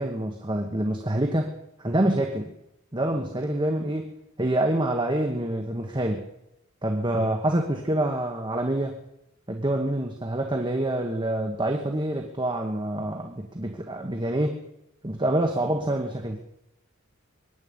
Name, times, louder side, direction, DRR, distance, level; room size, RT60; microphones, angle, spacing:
voice 1, 0.0-1.5 1.8-2.5 2.9-4.1 4.4-6.2 6.8-9.0 9.5-14.6 15.0-16.4, right 1 dB, 20° right, 2 dB, 1.4 m, -26 dB
22.5 x 10.5 x 5.5 m, 0.85 s
head